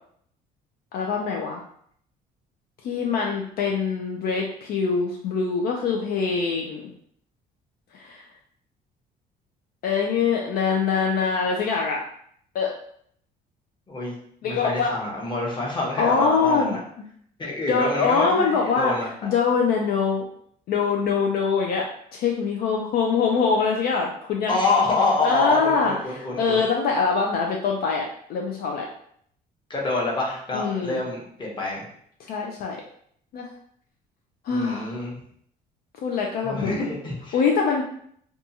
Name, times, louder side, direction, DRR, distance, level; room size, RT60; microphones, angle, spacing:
voice 1, 0.9-1.6 2.8-6.9 7.9-8.2 9.8-12.0 12.5-12.7 14.4-14.9 16.0-16.8 17.7-18.9 19.2-20.2 20.7-21.8 22.1-24.6 25.2-28.0 28.3-28.9 30.5-31.0 32.3-32.8 33.3-33.5 34.4-35.0 36.0-36.8 37.3-37.8, left 5 dB, 65° left, 0 dB, 0.4 m, -23 dB
voice 2, 14.4-16.8 17.4-19.1 24.5-26.6 29.7-31.8 34.5-35.1 36.4-37.4, left 3 dB, 30° left, -3 dB, 1.0 m, -26 dB
2.7 x 2.3 x 2.7 m, 0.66 s
cardioid pair, 110°, 17 cm